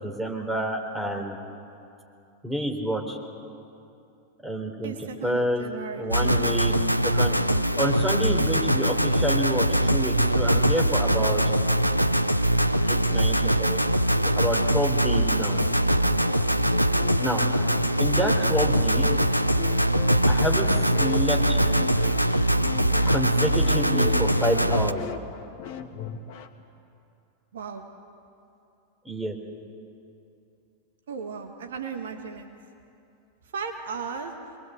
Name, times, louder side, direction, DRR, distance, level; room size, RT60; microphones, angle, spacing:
voice 1, 0.0-1.4 2.4-3.2 4.4-4.9 5.2-5.6 6.0-6.7 7.0-7.4 7.8-11.4 12.9-13.8 14.4-15.6 17.2-17.4 18.0-19.1 20.2-20.7 21.0-21.6 23.1-25.0 29.1-29.4, equal, 5° right, 1 dB, 3.8 m, -28 dB
voice 2, 4.8-6.9 27.5-27.9 31.1-32.5 33.5-34.3, right 5 dB, 60° right, 4 dB, 1.8 m, -36 dB
sound 1, 6.1-24.9, right 1 dB, 90° right, 0.7 m, -22 dB
sound 2, 16.1-26.6, left 7 dB, 50° left, 1.6 m, -38 dB
24.5 x 22.0 x 7.9 m, 2.7 s
figure-of-eight pair, 90°, 0 cm